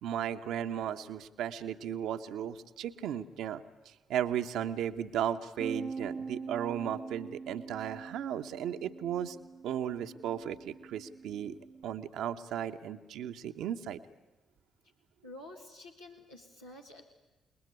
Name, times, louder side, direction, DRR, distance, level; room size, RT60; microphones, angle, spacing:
voice 1, 0.0-9.4 9.6-11.6 11.8-14.0, right 9 dB, 60° right, 8 dB, 1.1 m, -35 dB
Bass guitar, 5.6-11.8, right 4 dB, 35° right, 0.8 m, -44 dB
voice 2, 15.2-17.0, left 2 dB, 80° left, -3 dB, 1.8 m, -49 dB
28.5 x 21.0 x 9.6 m, 1.1 s
figure-of-eight pair, 40°, 0 cm